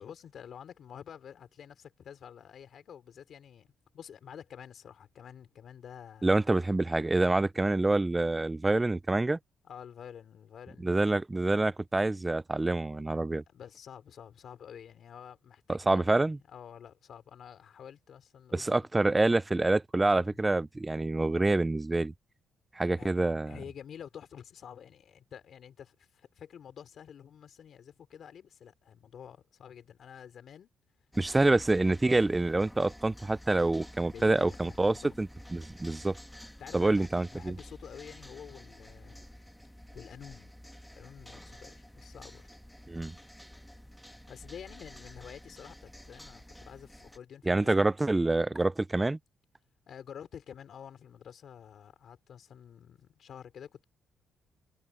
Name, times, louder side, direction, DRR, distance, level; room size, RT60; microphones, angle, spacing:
voice 1, 0.0-6.3 9.6-11.0 13.3-16.1 16.5-18.9 20.1-20.5 23.0-30.7 34.1-35.2 36.6-39.3 39.9-40.5 40.9-42.4 44.3-47.9 49.9-53.8, left 8 dB, 60° left, 4.3 m, -49 dB
voice 2, 6.2-9.4 10.8-13.4 15.7-16.4 18.5-22.1 22.8-23.6 31.2-36.1 36.7-37.5 42.9-43.1 47.5-49.2, right 2 dB, 15° right, 0.4 m, -27 dB
sound 1, 31.1-47.2, equal, 5° left, 2.0 m, -50 dB
cardioid pair, 90°, 0 cm